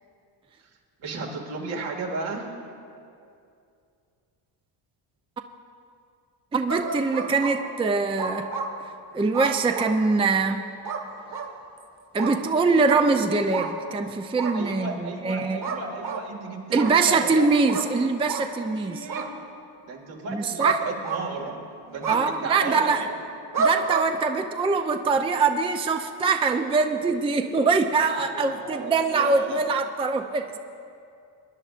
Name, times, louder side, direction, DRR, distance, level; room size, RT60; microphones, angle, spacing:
voice 1, 1.0-2.5 14.5-17.5 18.6-19.3 19.9-21.6 21.9-23.2 28.3-29.5, right 4 dB, 70° right, -1 dB, 2.2 m, -34 dB
voice 2, 6.5-8.5 9.1-10.6 12.1-15.6 16.7-19.1 20.3-20.8 22.1-23.1 23.6-30.6, right 4 dB, 10° right, 6 dB, 0.4 m, -23 dB
sound 1, 6.7-7.5 8.2-8.7 9.3-9.9 10.8-11.0 11.3-11.5 12.2-12.3 12.9-13.0 13.5-13.7 14.4-14.5 15.6-16.2 16.7-16.9 17.7-17.9 18.3-18.4 19.1-19.3 20.6-20.8 21.0-21.6 22.0-22.2 23.5-24.1, right 5 dB, 40° right, 1.7 m, -29 dB
23.0 x 10.5 x 2.5 m, 2.5 s
supercardioid pair, 80°, 49 cm